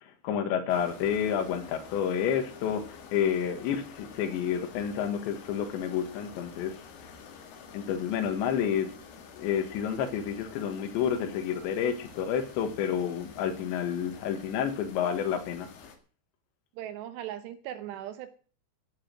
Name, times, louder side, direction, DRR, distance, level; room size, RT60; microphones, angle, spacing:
voice 1, 0.0-6.8 7.7-8.9 9.4-15.7, left 8 dB, 80° left, 3.8 m, -30 dB
sound 1, 0.7-16.0, left 5 dB, 65° left, 3.5 m, -49 dB
voice 2, 16.8-18.3, right 12 dB, 75° right, 2.8 m, -38 dB
16.0 x 7.6 x 7.7 m
omnidirectional pair, 5.2 m